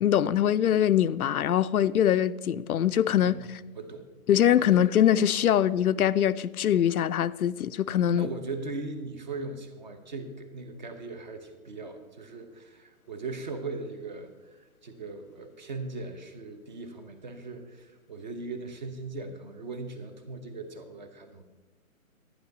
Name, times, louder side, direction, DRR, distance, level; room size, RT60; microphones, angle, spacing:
voice 1, 0.0-3.4 4.3-8.3, left 10 dB, 90° left, 0.6 m, -23 dB
voice 2, 3.8-4.1 4.7-4.9 8.1-21.4, right 3 dB, 35° right, 1.0 m, -39 dB
11.0 x 10.5 x 4.0 m
hypercardioid pair, 165°, 42 cm